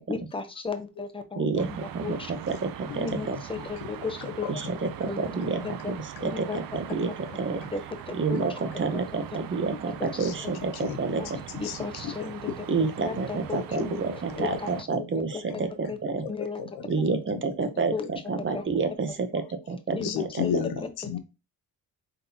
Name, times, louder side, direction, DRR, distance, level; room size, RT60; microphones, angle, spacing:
voice 1, 0.1-2.3 3.0-4.6 5.0-5.3 5.6-5.9 6.2-6.6 7.6-7.8 8.1-8.4 8.9-9.0 9.3-9.4 11.2-11.3 11.6-12.5 13.0-13.7 14.4-14.7 15.1-15.2 15.9-16.0 16.3-16.6 17.9-18.1 18.5-18.6 19.9-20.5, left 4 dB, 15° left, 8 dB, 0.7 m, -34 dB
voice 2, 1.4-3.4 4.5-7.6 8.1-11.2 12.7-16.3 16.8-20.6, right 4 dB, 30° right, 7 dB, 0.7 m, -29 dB
sound 1, 1.6-14.8, right 10 dB, 65° right, 0.6 m, -42 dB
voice 3, 4.0-4.9 6.2-6.3 10.2-10.3 10.7-11.0 11.3-12.3 12.7-12.8 13.8-14.0 14.5-14.8 16.2-16.3 16.6-17.0 17.3-17.4 20.0-21.2, left 7 dB, 85° left, 9 dB, 0.8 m, -34 dB
4.0 x 3.4 x 2.8 m, 0.29 s
cardioid pair, 100°, 38 cm